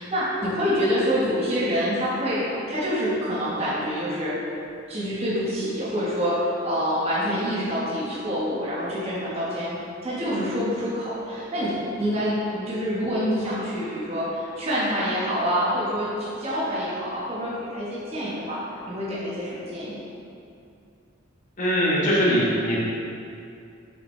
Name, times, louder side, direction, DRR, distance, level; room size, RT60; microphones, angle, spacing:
voice 1, 0.0-4.4 4.9-9.8 10.0-18.6 18.9-20.0, equal, 30° right, -9 dB, 1.4 m, -26 dB
voice 2, 21.6-22.8, equal, 40° left, -7 dB, 1.3 m, -21 dB
7.0 x 5.7 x 3.3 m, 2.5 s
head